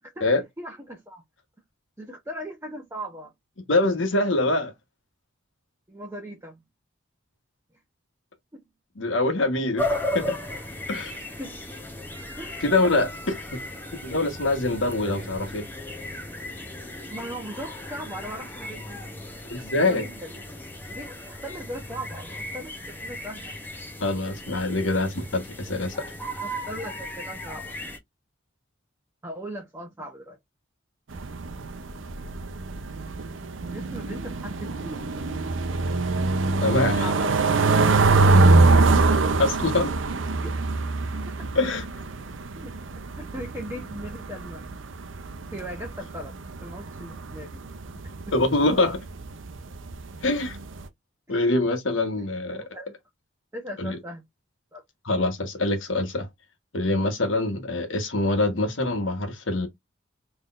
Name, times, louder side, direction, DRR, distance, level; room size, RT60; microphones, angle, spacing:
voice 1, 0.6-1.2 2.0-3.3 5.9-6.6 8.5-8.6 11.4-11.6 12.4-12.7 15.0-15.3 17.1-19.1 19.8-20.3 20.9-23.5 24.2-24.4 26.4-27.8 29.2-30.4 33.7-35.1 37.0-37.6 40.4-40.6 42.5-42.7 43.1-44.7 45.5-46.3 46.6-47.6 52.5-52.9 53.5-54.2 54.7-54.8, equal, 15° right, 0.9 m, -38 dB
voice 2, 3.7-4.7 9.0-10.4 10.9-11.2 12.6-13.6 14.0-15.6 19.5-20.0 24.0-25.9 36.6-37.1 39.4-39.9 41.5-41.8 48.3-49.0 50.2-50.6 51.3-52.6 53.8-54.0 55.0-56.3 56.7-59.7, left 2 dB, 75° left, 1.3 m, -24 dB
sound 1, 9.8-28.0, left 1 dB, 10° left, 0.9 m, -36 dB
sound 2, 31.1-50.8, right 3 dB, 75° right, 0.6 m, -24 dB
3.9 x 3.3 x 2.5 m
head